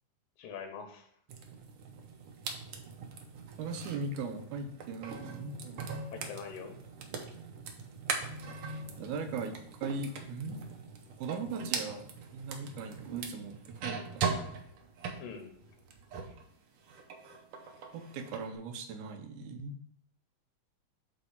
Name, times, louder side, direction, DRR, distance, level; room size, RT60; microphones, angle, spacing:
voice 1, 0.4-1.1 6.1-6.8 15.2-15.6, left 6 dB, 90° left, 6 dB, 2.4 m, -43 dB
sound 1, 1.3-16.4 16.8-18.4, right 5 dB, 65° right, 1.4 m, -41 dB
voice 2, 3.6-5.6 8.5-10.6 11.2-14.6 17.9-19.8, right 4 dB, 85° right, 7 dB, 2.3 m, -39 dB
8.2 x 3.2 x 5.7 m, 0.66 s
omnidirectional pair, 3.4 m